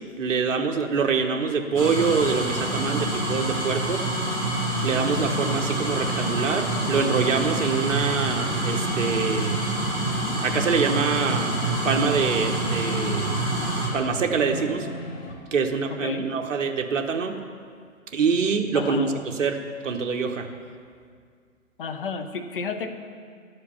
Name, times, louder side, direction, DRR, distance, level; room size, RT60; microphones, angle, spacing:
voice 1, 0.2-4.1 4.8-9.6 10.4-11.6 11.8-13.4 13.9-14.9 15.5-17.4 18.1-19.6 19.8-20.5, right 5 dB, 60° right, 4 dB, 1.1 m, -25 dB
sound 1, 1.7-13.9, right 1 dB, 5° left, 2.1 m, -27 dB
sound 2, 1.9-15.4, left 1 dB, 65° left, 1.6 m, -40 dB
voice 2, 15.9-16.2 18.7-19.2 21.8-22.9, left 5 dB, 40° left, 7 dB, 0.7 m, -32 dB
11.5 x 5.0 x 7.0 m, 2.1 s
hypercardioid pair, 150°, 42 cm